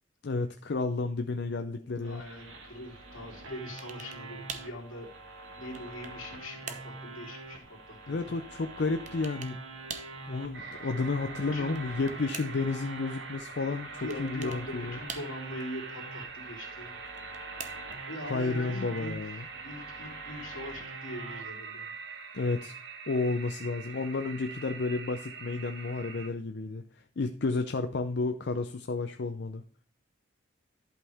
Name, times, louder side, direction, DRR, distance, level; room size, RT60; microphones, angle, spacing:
voice 1, 0.2-2.2 8.1-9.6 10.3-15.0 18.3-19.5 22.3-22.7 23.1-29.6, left 3 dB, 55° left, 6 dB, 0.5 m, -32 dB
voice 2, 1.7-5.1 5.6-8.3 10.6-10.8 11.2-12.9 13.6-17.0 18.1-19.3 19.6-21.9, left 1 dB, 85° left, -2 dB, 2.8 m, -42 dB
sound 1, 2.0-21.4, right 3 dB, 80° right, 1.6 m, -46 dB
sound 2, 3.8-4.2 4.5-4.8 5.4-6.2 6.7-7.0 9.1-9.6 9.9-10.2 11.6-12.7 14.1-14.6 15.1-15.6 17.1-18.0, right 6 dB, 40° right, 0.7 m, -43 dB
sound 3, 10.5-26.3, right 4 dB, 55° right, 1.1 m, -44 dB
11.0 x 5.6 x 3.4 m, 0.39 s
head